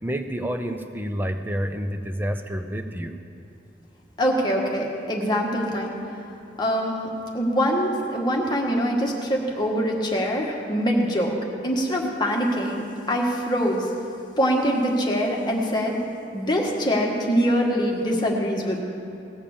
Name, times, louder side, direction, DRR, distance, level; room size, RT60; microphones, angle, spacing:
voice 1, 0.0-3.2, equal, 10° right, 6 dB, 0.7 m, -29 dB
voice 2, 4.2-6.0 6.6-7.1 7.3-11.3 11.6-13.9 14.4-16.0 16.3-18.8, equal, 25° left, -1 dB, 1.5 m, -24 dB
18.0 x 7.3 x 7.1 m, 2.8 s
head